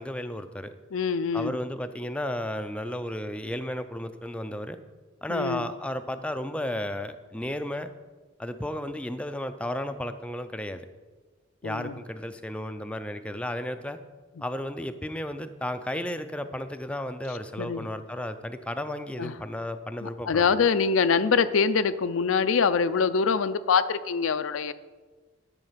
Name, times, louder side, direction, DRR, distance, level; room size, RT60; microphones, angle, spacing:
voice 1, 0.0-0.7 1.3-4.8 5.2-7.9 8.4-10.9 11.6-14.0 14.4-20.6, left 1 dB, 5° left, 8 dB, 0.4 m, -33 dB
voice 2, 0.9-1.6 5.3-5.7 11.6-11.9 17.6-17.9 19.2-19.3 20.0-24.7, left 5 dB, 85° left, 12 dB, 0.5 m, -24 dB
11.0 x 6.9 x 5.7 m, 1.3 s
head